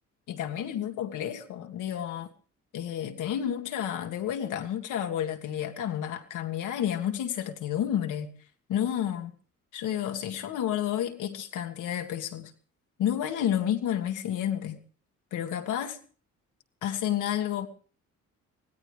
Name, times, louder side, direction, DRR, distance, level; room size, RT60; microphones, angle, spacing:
voice 1, 0.3-2.3 2.7-8.3 8.7-9.3 9.7-12.5 13.0-14.8 15.3-16.0 16.8-17.7, left 10 dB, 85° left, 1.9 m, -30 dB
24.5 x 17.0 x 3.4 m
cardioid pair, 90°, 30 cm